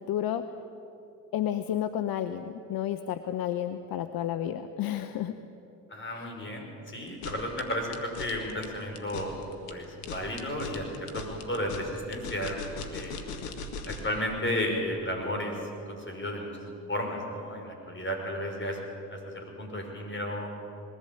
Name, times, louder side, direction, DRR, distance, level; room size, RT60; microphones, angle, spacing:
voice 1, 0.1-0.4 1.3-5.3, left 11 dB, 65° left, 10 dB, 0.9 m, -31 dB
voice 2, 5.9-9.4 9.7-13.2 13.9-16.5 16.9-18.8 19.1-20.5, equal, 30° left, 1 dB, 6.0 m, -33 dB
sound 1, 7.1-14.2, left 3 dB, 85° left, 1.7 m, -39 dB
21.0 x 15.5 x 8.7 m, 2.8 s
hypercardioid pair, 55°, 39 cm